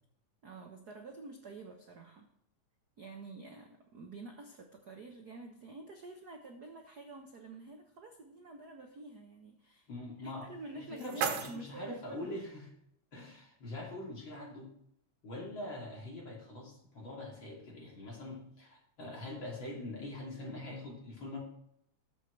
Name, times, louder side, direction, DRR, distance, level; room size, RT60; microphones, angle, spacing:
voice 1, 0.4-2.3 3.0-9.9 10.2-12.4, right 3 dB, 60° right, 2 dB, 1.0 m, -48 dB
voice 2, 9.9-12.7 13.1-14.7 15.2-21.4, left 1 dB, 40° left, -2 dB, 3.4 m, -43 dB
sound 1, 10.5-12.5, right 7 dB, 80° right, 2.7 m, -39 dB
20.0 x 7.5 x 3.3 m, 0.77 s
omnidirectional pair, 3.5 m